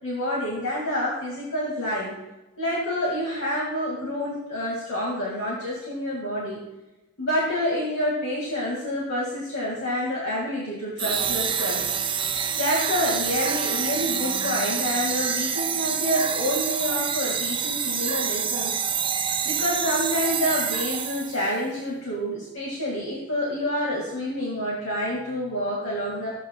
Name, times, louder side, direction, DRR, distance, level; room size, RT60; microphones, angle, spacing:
voice 1, 0.0-2.2 2.6-6.6 7.2-11.8 12.5-18.7 19.4-26.3, equal, 80° left, -5 dB, 2.6 m, -28 dB
sound 1, 11.0-21.5, right 7 dB, 25° right, 0.5 m, -27 dB
14.0 x 9.3 x 2.5 m, 0.99 s
head